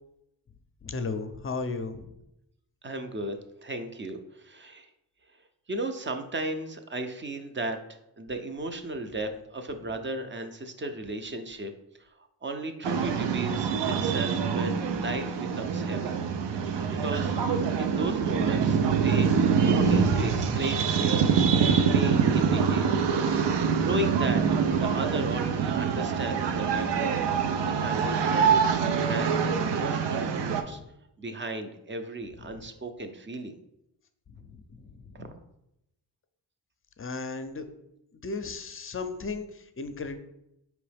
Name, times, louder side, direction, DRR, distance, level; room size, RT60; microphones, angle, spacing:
voice 1, 0.8-2.1 17.9-18.0 20.5-20.6 30.5-30.6 34.3-35.2 37.0-37.6 38.2-40.2, left 4 dB, 30° left, 9 dB, 0.5 m, -35 dB
voice 2, 2.8-4.9 5.7-11.7 12.0-16.1 16.5-16.6 16.9-17.3 17.8-22.9 23.8-24.4 24.8-27.3 27.6-30.8 31.2-33.6 35.1-35.3, right 1 dB, 30° right, 7 dB, 0.5 m, -35 dB
sound 1, 12.8-30.6, right 6 dB, 75° right, 0.5 m, -25 dB
4.6 x 3.1 x 3.3 m, 0.83 s
cardioid pair, 65°, 42 cm